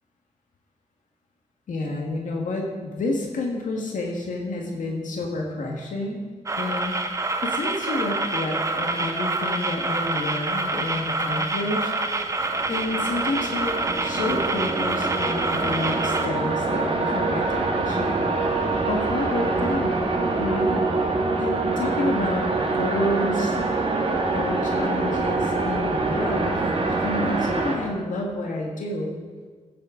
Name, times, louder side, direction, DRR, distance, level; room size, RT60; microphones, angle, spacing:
voice 1, 1.7-6.2 6.6-7.0 7.4-11.9 12.7-18.2 18.8-20.0 20.4-20.8 21.4-23.6 24.3-26.6 26.9-29.2, left 2 dB, 85° left, 0 dB, 1.6 m, -29 dB
sound 1, 6.5-16.3, right 2 dB, 25° right, 0.7 m, -27 dB
sound 2, 12.2-27.7, right 3 dB, 45° right, 1.8 m, -25 dB
15.0 x 8.8 x 3.8 m, 1.4 s
wide cardioid pair, 115°, 13 cm